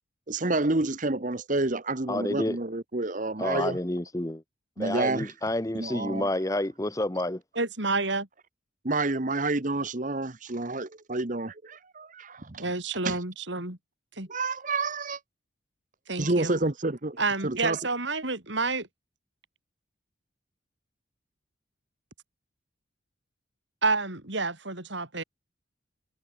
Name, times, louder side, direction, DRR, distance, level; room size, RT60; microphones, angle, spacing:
voice 1, 0.3-3.8 4.8-5.3 5.7-6.3 8.8-12.6 13.0-13.2 14.3-15.2 16.2-17.2 17.4-17.8, right 2 dB, 40° right, 1.2 m, -29 dB
voice 2, 2.1-2.6 3.4-4.4 4.8-7.4, left 1 dB, 15° left, 0.9 m, -29 dB
voice 3, 7.5-8.3 12.6-13.8 14.2-14.3 16.1-16.6 17.2-18.9 23.8-25.2, right 3 dB, 65° right, 4.7 m, -29 dB
head